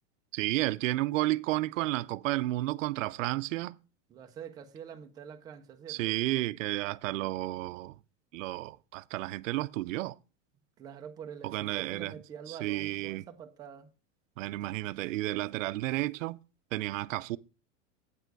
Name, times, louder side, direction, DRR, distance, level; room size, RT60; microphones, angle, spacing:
voice 1, 0.3-3.8 5.9-8.0 8.3-10.2 11.4-12.1 12.5-13.2 14.4-16.4 16.7-17.4, right 17 dB, 85° right, 0.6 m, -32 dB
voice 2, 4.1-6.2 10.8-13.9, right 8 dB, 10° right, 0.4 m, -46 dB
9.2 x 6.8 x 4.6 m
supercardioid pair, 165°, 38 cm